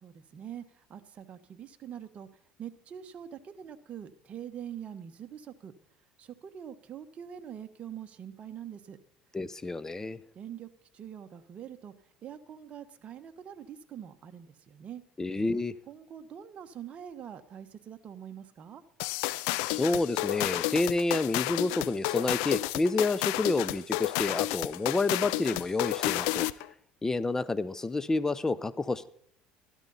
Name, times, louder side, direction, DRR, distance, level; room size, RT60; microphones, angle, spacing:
voice 1, 0.0-2.3 2.6-5.7 6.2-9.0 10.3-10.7 10.9-11.9 12.2-15.0 15.9-18.8, right 9 dB, 40° right, 1.2 m, -44 dB
voice 2, 9.3-10.2 15.2-15.7 19.7-26.5 27.0-29.1, left 3 dB, 15° left, 0.7 m, -29 dB
sound 1, 19.0-26.7, left 19 dB, 80° left, 0.5 m, -31 dB
13.0 x 12.5 x 4.1 m
supercardioid pair, 100°, 3 cm